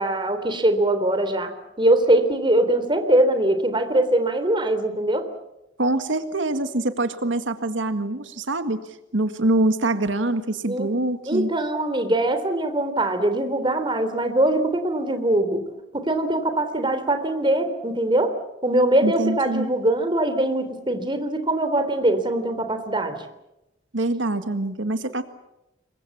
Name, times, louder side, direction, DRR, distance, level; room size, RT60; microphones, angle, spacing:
voice 1, 0.0-5.3 10.7-10.9 11.3-15.6 15.9-18.4 18.6-23.2, right 1 dB, 25° right, 8 dB, 3.4 m, -22 dB
voice 2, 5.8-8.8 9.1-11.5 19.0-19.7 23.9-25.2, right 2 dB, 90° right, 9 dB, 1.8 m, -24 dB
28.0 x 23.5 x 7.3 m, 0.93 s
head